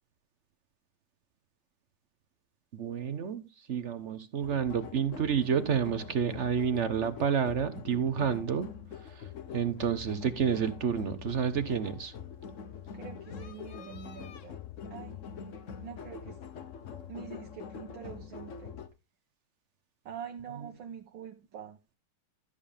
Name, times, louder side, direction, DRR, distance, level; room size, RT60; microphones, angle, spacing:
voice 1, 2.7-8.7 8.9-12.1 20.6-20.7, right 7 dB, 55° right, 0.8 m, -30 dB
sound 1, 4.4-18.9, left 7 dB, 50° left, 0.9 m, -44 dB
voice 2, 12.9-14.6 14.9-15.2 15.8-16.4 17.1-18.7 20.1-21.8, right 8 dB, 75° right, 1.8 m, -45 dB
13.0 x 7.0 x 3.5 m
omnidirectional pair, 2.3 m